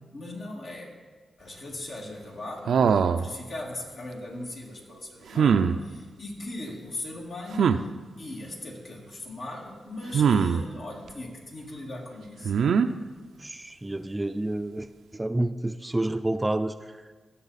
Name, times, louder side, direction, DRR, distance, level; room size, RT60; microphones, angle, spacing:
voice 1, 0.1-1.0 1.4-7.8 8.2-12.5, left 2 dB, 70° left, -2 dB, 2.3 m, -39 dB
sound 1, 2.7-3.3 5.3-5.8 7.5-7.8 10.1-10.6 12.4-12.9, right 6 dB, 80° right, 0.4 m, -21 dB
voice 2, 13.4-14.9 15.1-17.2, right 1 dB, 15° right, 10 dB, 0.4 m, -29 dB
16.5 x 6.3 x 4.1 m, 1.4 s
cardioid pair, 65°, 0 cm